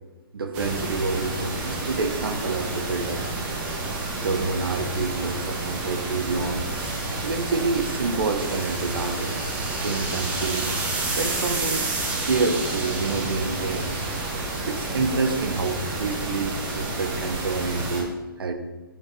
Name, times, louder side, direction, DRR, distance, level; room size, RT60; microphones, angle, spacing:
voice 1, 0.3-3.2 4.2-6.6 7.2-9.6 9.8-10.8 11.2-13.9 14.7-18.1 18.4-18.5, right 3 dB, 75° right, 7 dB, 1.1 m, -28 dB
sound 1, 0.5-18.0, right 2 dB, 25° right, 1.6 m, -31 dB
sound 2, 6.3-15.0, right 2 dB, 10° right, 1.0 m, -32 dB
7.8 x 6.5 x 4.3 m, 1.2 s
hypercardioid pair, 155°, 12 cm